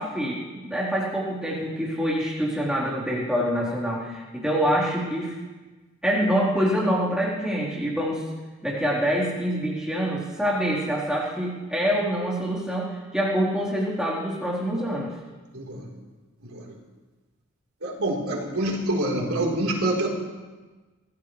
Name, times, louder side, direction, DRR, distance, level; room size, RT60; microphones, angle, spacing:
voice 1, 0.0-5.3 6.0-8.2 8.6-15.1, equal, 5° right, -7 dB, 3.9 m, -26 dB
voice 2, 15.5-15.9 16.4-16.7 17.8-20.1, right 1 dB, 90° right, -2 dB, 4.0 m, -26 dB
25.5 x 15.5 x 3.3 m, 1.3 s
head